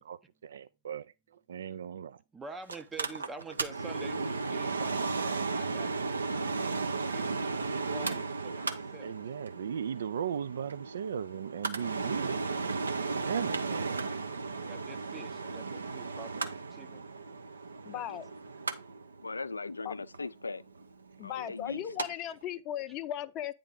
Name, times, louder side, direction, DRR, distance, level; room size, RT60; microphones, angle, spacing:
voice 1, 0.0-2.2 9.0-12.5 13.2-14.1 21.4-21.7 22.1-22.2, right 8 dB, 70° right, 0.3 m, -37 dB
voice 2, 2.3-5.9 7.9-9.1 14.5-17.0 17.9-18.0, right 4 dB, 15° right, 0.5 m, -47 dB
Mechanical fan, 2.7-22.1 22.4-22.5, right 4 dB, 85° right, 0.8 m, -35 dB
voice 3, 17.8-18.3 19.8-19.9 21.2-23.5, left 11 dB, 35° left, 0.6 m, -37 dB
voice 4, 19.2-20.6 21.2-21.8, left 3 dB, 90° left, 0.3 m, -38 dB
8.9 x 3.5 x 5.0 m
hypercardioid pair, 115°, 0 cm